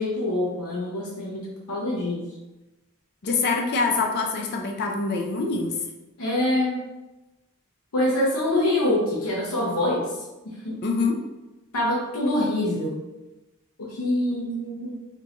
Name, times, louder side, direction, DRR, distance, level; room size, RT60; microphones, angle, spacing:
voice 1, 0.0-2.2 6.2-6.8 7.9-10.0 10.4-10.8 11.7-13.0 13.8-15.0, left 1 dB, 90° left, -5 dB, 0.8 m, -25 dB
voice 2, 3.2-5.8 10.8-11.2, left 4 dB, 45° left, 2 dB, 0.4 m, -25 dB
3.7 x 2.5 x 2.9 m, 1.1 s
head